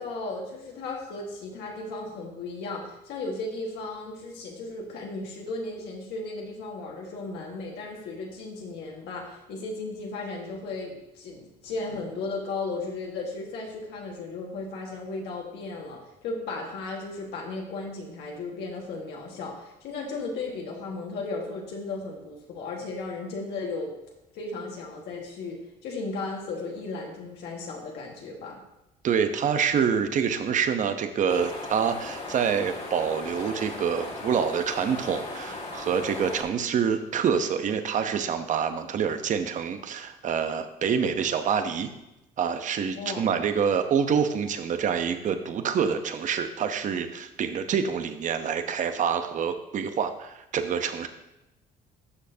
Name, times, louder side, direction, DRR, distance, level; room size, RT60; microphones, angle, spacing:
voice 1, 0.0-23.9 24.3-28.6 43.0-43.3, left 3 dB, 80° left, -1 dB, 1.6 m, -35 dB
voice 2, 29.0-41.9 42.4-51.1, right 7 dB, 50° right, 8 dB, 0.8 m, -26 dB
sound 1, 31.3-36.4, left 2 dB, 40° left, 2.0 m, -37 dB
12.5 x 6.3 x 2.8 m, 0.89 s
cardioid pair, 110°, 17 cm